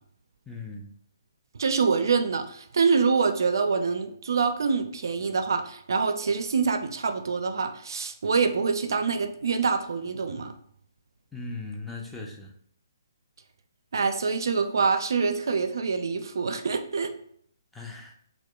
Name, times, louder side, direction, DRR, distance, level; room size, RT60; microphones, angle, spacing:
voice 1, 0.5-0.9 11.3-12.5 17.7-18.1, left 3 dB, 5° left, -1 dB, 0.5 m, -38 dB
voice 2, 1.6-10.5 13.9-17.1, right 5 dB, 65° right, 7 dB, 0.3 m, -25 dB
4.3 x 2.2 x 2.3 m, 0.65 s
figure-of-eight pair, 140°, 2 cm